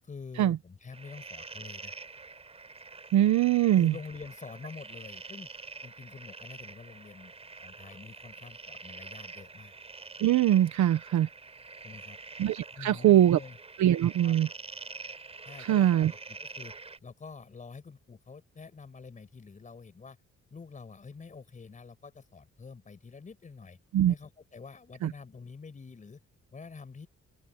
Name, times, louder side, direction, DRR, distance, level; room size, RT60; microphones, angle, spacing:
voice 1, 0.0-1.9 3.7-5.5 5.8-7.3 7.6-9.7 11.8-12.2 12.7-13.6 14.2-14.3 15.4-16.7 17.0-20.2 20.5-23.8 24.1-26.2 26.5-27.1, left 5 dB, 25° left, 6.4 m, -47 dB
sound 1, 0.9-17.0, right 4 dB, 20° right, 5.8 m, -46 dB
voice 2, 3.1-3.9 10.2-11.3 12.4-13.4 13.8-14.5 15.6-16.1 23.9-24.1 25.0-25.1, right 12 dB, 75° right, 1.2 m, -22 dB
open air
cardioid pair, 165°, 29 cm